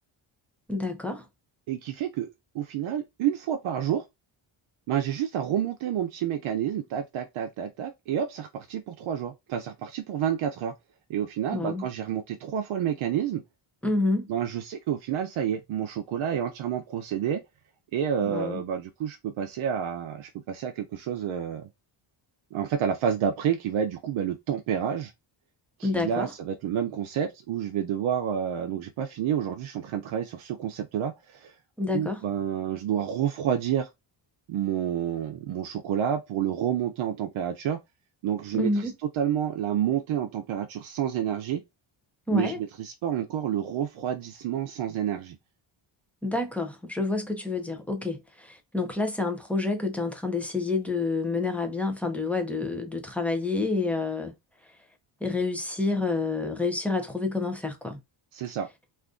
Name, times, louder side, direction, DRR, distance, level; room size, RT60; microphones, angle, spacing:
voice 1, 0.7-1.2 11.5-11.8 13.8-14.3 18.2-18.6 25.8-26.3 31.8-32.2 38.5-38.9 42.3-42.6 46.2-54.3 55.2-58.0, left 3 dB, 5° left, 0.4 m, -28 dB
voice 2, 1.7-4.0 4.9-10.7 11.1-13.4 14.3-17.4 17.9-21.7 22.5-25.1 25.8-31.5 31.9-33.9 34.5-37.8 38.2-41.6 42.3-45.4 58.3-58.7, right 9 dB, 70° right, 0.6 m, -29 dB
2.5 x 2.5 x 3.6 m
wide cardioid pair, 170°, 50 cm